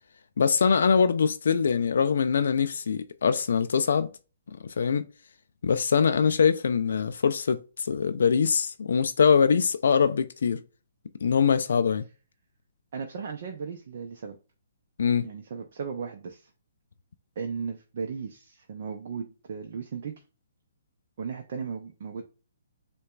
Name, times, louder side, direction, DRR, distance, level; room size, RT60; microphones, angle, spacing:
voice 1, 0.4-4.1 4.6-5.1 5.6-10.6 11.2-12.0 15.0-15.3, left 6 dB, 70° left, 0.3 m, -23 dB
voice 2, 12.9-14.4 15.2-16.5 17.4-20.1 21.2-22.2, right 6 dB, 55° right, 0.6 m, -36 dB
6.5 x 2.3 x 2.4 m
hypercardioid pair, 140°, 0 cm